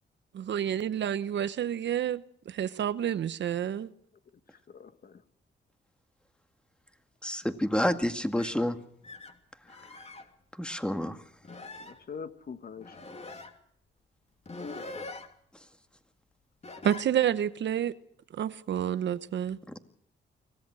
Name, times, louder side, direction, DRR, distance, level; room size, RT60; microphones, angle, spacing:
voice 1, 0.3-3.9 16.8-17.9 18.3-19.6, right 10 dB, 70° right, 1.0 m, -29 dB
voice 2, 4.3-5.2 11.8-13.0 14.6-14.9, left 6 dB, 50° left, 1.5 m, -44 dB
voice 3, 7.2-8.8 10.6-11.2, left 1 dB, 5° left, 2.0 m, -28 dB
sound 1, 8.4-8.6 9.0-9.4 9.7-10.3 10.9-11.0 11.4-12.0 12.8-13.5 14.5-15.3 16.6-17.1, left 3 dB, 35° left, 2.9 m, -43 dB
24.5 x 17.0 x 6.3 m
cardioid pair, 85°, 19 cm